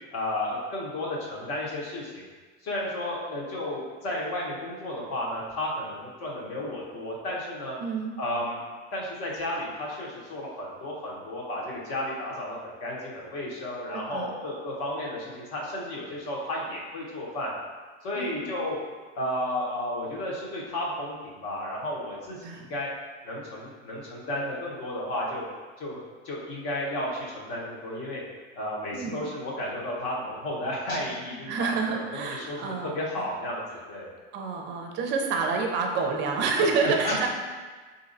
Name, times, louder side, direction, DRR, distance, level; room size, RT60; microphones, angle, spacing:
voice 1, 0.1-2.3 2.6-7.7 8.2-8.6 8.9-17.5 18.0-18.8 19.1-22.9 23.2-25.4 25.8-28.2 28.6-32.6 32.8-34.1 36.8-37.2, left 1 dB, 55° left, -4 dB, 1.1 m, -33 dB
voice 2, 7.8-8.1 13.9-14.4 18.1-18.3 22.4-22.6 28.9-29.2 31.5-33.3 34.3-37.3, right 4 dB, 35° right, 3 dB, 0.5 m, -28 dB
4.1 x 2.7 x 2.6 m, 1.4 s
cardioid pair, 150°, 31 cm